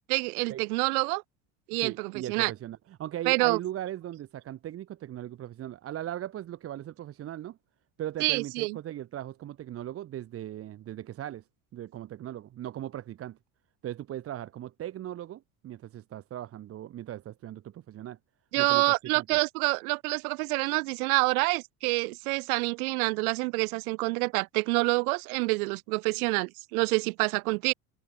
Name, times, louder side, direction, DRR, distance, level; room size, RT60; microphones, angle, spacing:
voice 1, 0.1-1.2 1.7-2.5 3.3-3.6 8.2-8.8 18.5-27.7, right 27 dB, 85° right, 0.5 m, -27 dB
voice 2, 1.8-7.6 8.0-11.5 11.7-13.4 13.8-18.2 18.6-19.3, right 12 dB, 35° right, 0.7 m, -38 dB
supercardioid pair, 95°, 42 cm